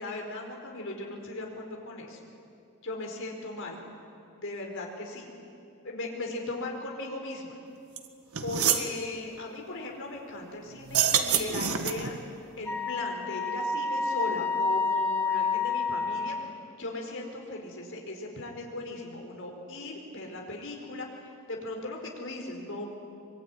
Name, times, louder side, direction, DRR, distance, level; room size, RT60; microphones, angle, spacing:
voice 1, 0.0-2.2 2.8-3.8 4.4-5.3 5.8-7.6 8.4-12.2 12.6-16.4 16.8-22.9, left 2 dB, 60° left, 1 dB, 4.8 m, -38 dB
sound 1, 8.0-8.1 8.3-8.9 10.8-12.2, right 8 dB, 80° right, 1.8 m, -26 dB
Wind instrument woodwind instrument, 12.7-16.5, left 4 dB, 10° left, 3.2 m, -29 dB
24.5 x 23.0 x 9.9 m, 2.5 s
head